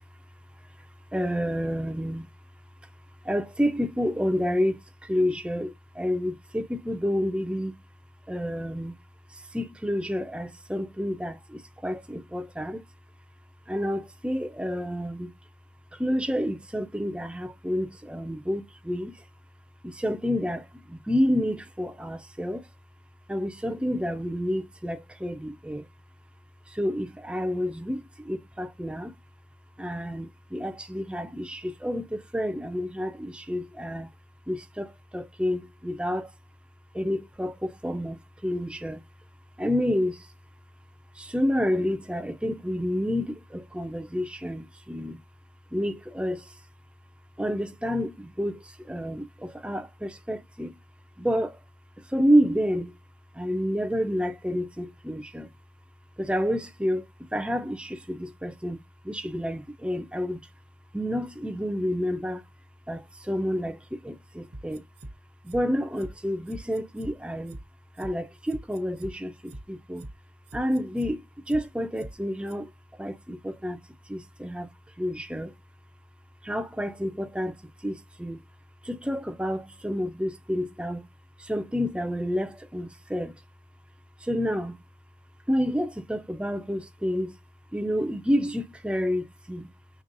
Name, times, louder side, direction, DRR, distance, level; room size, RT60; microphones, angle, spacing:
voice 1, 1.1-2.3 3.3-7.7 8.3-8.9 9.5-12.8 13.7-15.3 15.9-19.1 19.8-22.7 23.3-25.8 26.7-29.1 29.8-34.1 34.5-36.3 36.9-38.2 38.4-39.0 39.6-40.2 41.2-45.2 45.7-46.4 47.4-48.6 48.9-50.7 51.2-51.6 52.1-52.9 53.4-55.5 56.2-57.0 57.3-58.8 59.0-60.4 60.9-62.4 62.9-64.8 65.4-67.6 68.0-70.0 70.5-71.2 71.5-72.7 73.0-73.8 74.1-74.7 75.0-75.5 76.4-77.5 77.8-78.4 78.8-81.1 81.4-83.3 84.2-84.8 85.5-87.3 87.7-89.7, equal, 5° right, 0.4 m, -29 dB
sound 1, 64.5-65.1 65.5-65.6 66.0-66.1 66.5-67.1 67.5-67.6 68.0-68.1 68.5-69.1 69.5-69.6 70.0-70.1 70.5-71.1 71.5-71.6 72.0-72.1 72.5-72.6, right 1 dB, 65° right, 0.8 m, -42 dB
5.2 x 3.3 x 2.6 m
head